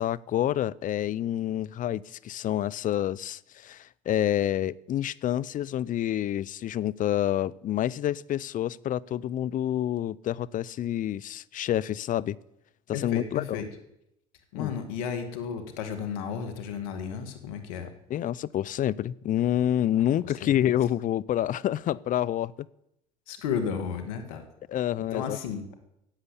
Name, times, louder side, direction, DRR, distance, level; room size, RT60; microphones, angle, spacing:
voice 1, 0.0-12.4 13.0-13.6 14.6-14.7 18.1-22.7 24.7-25.4, left 11 dB, 45° left, 21 dB, 0.6 m, -28 dB
voice 2, 12.9-13.7 14.5-17.9 20.2-20.5 23.3-24.5 25.1-25.7, left 7 dB, 85° left, 7 dB, 2.0 m, -33 dB
15.0 x 8.2 x 9.9 m, 0.82 s
supercardioid pair, 80°, 18 cm